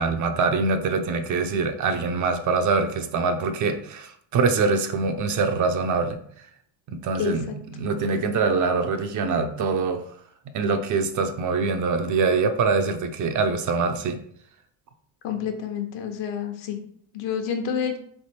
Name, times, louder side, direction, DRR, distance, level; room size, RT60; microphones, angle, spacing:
voice 1, 0.0-6.2 6.9-7.5 7.8-10.0 10.5-14.2, right 4 dB, 45° right, 7 dB, 0.5 m, -24 dB
voice 2, 7.2-7.5 15.2-16.8 17.1-18.0, left 7 dB, 70° left, 5 dB, 1.0 m, -28 dB
3.5 x 3.4 x 4.2 m, 0.63 s
cardioid pair, 140°, 45 cm